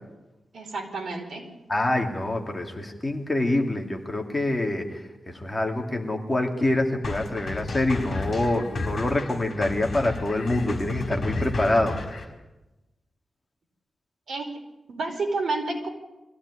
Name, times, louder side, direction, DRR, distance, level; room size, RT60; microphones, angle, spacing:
voice 1, 0.5-1.5 14.3-14.5 14.9-15.9, right 3 dB, 60° right, 2 dB, 4.7 m, -30 dB
voice 2, 1.7-4.8 5.4-12.2, left 1 dB, 15° left, 1 dB, 2.6 m, -26 dB
sound 1, 7.0-12.2, left 2 dB, 45° left, 4.8 m, -32 dB
23.5 x 16.0 x 9.8 m, 1.0 s
wide cardioid pair, 155°, 0 cm